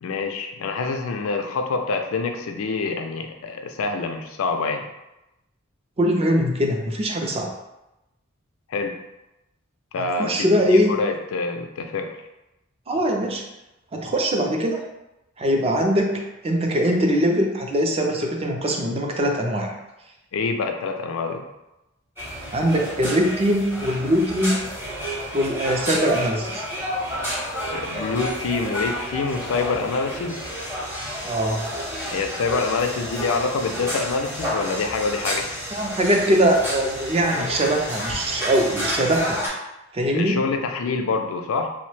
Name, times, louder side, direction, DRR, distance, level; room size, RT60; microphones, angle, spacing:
voice 1, 0.0-4.9 8.7-9.0 9.9-12.1 20.3-21.4 27.7-30.4 32.1-35.5 40.1-41.7, left 4 dB, 85° left, 5 dB, 0.4 m, -26 dB
voice 2, 6.0-7.5 10.0-11.0 12.9-13.4 13.9-14.8 15.4-19.7 22.5-24.6 25.3-26.6 31.2-31.7 35.7-39.4 39.9-40.4, equal, 30° right, 1 dB, 0.4 m, -22 dB
sound 1, 22.2-39.5, equal, 10° right, 0.7 m, -30 dB
2.9 x 2.0 x 3.1 m, 0.94 s
head